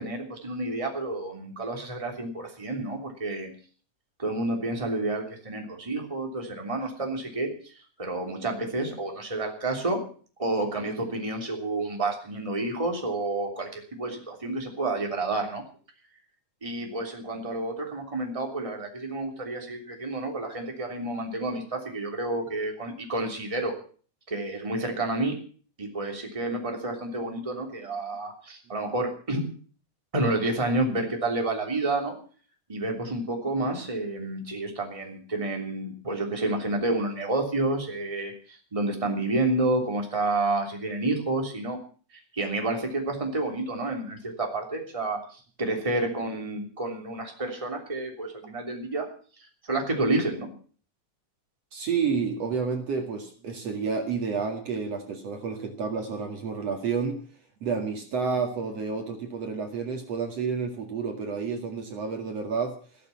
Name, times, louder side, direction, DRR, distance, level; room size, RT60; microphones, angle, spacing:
voice 1, 0.0-3.5 4.2-7.7 8.0-10.0 10.4-15.6 16.6-23.7 24.3-25.3 25.8-29.4 30.1-32.1 32.7-41.8 42.3-49.1 49.7-50.5, right 2 dB, 10° right, 2 dB, 3.0 m, -29 dB
voice 2, 51.7-57.2 57.6-62.8, right 5 dB, 55° right, 4 dB, 3.0 m, -30 dB
15.0 x 13.5 x 5.9 m, 0.42 s
omnidirectional pair, 3.5 m